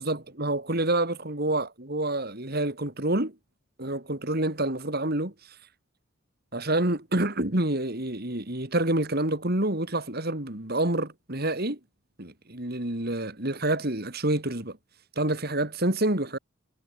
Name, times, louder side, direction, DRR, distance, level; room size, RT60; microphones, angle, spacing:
voice 1, 0.0-3.3 3.8-5.3 6.5-11.8 12.2-14.8 15.2-16.4, right 1 dB, 50° right, 3.3 m, -27 dB
head